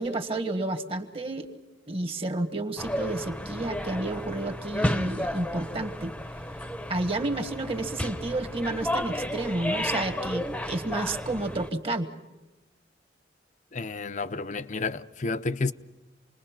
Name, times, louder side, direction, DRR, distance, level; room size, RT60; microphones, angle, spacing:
voice 1, 0.0-1.5 1.9-6.1 6.9-12.1, right 2 dB, 30° right, 1.4 m, -31 dB
sound 1, 2.8-11.7, left 1 dB, 5° left, 0.9 m, -32 dB
voice 2, 13.7-15.7, left 3 dB, 40° left, 0.7 m, -30 dB
28.0 x 20.5 x 5.8 m
head